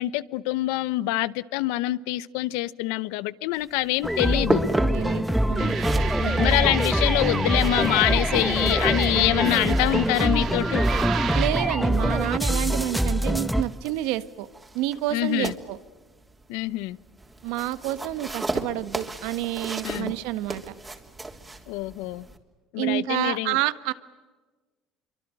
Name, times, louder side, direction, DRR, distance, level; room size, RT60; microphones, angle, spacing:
voice 1, 0.0-4.6 6.2-10.9 15.1-15.5 16.5-17.0 19.8-20.1 21.7-22.3 22.7-23.6, left 17 dB, 85° left, 0.8 m, -25 dB
sound 1, 3.5-22.4, right 2 dB, 15° right, 3.2 m, -36 dB
sound 2, 4.0-13.6, equal, ahead, 1.0 m, -24 dB
voice 2, 4.9-6.4 11.3-14.5 14.7-15.8 17.4-20.7 22.8-23.9, right 15 dB, 80° right, 1.3 m, -29 dB
sound 3, 5.6-11.5, right 8 dB, 55° right, 3.2 m, -32 dB
27.0 x 24.5 x 9.1 m
supercardioid pair, 100°, 0 cm